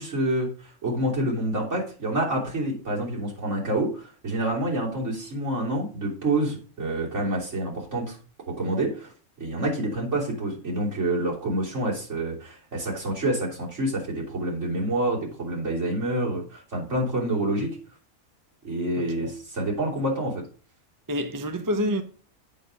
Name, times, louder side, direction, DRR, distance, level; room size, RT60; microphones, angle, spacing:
voice 1, 0.0-8.2 8.5-9.1 9.4-17.8 18.6-20.4, right 1 dB, 65° right, 3.6 m, -27 dB
voice 2, 19.0-19.3 21.1-22.0, equal, 20° right, 0.7 m, -28 dB
8.3 x 7.0 x 5.2 m
omnidirectional pair, 1.3 m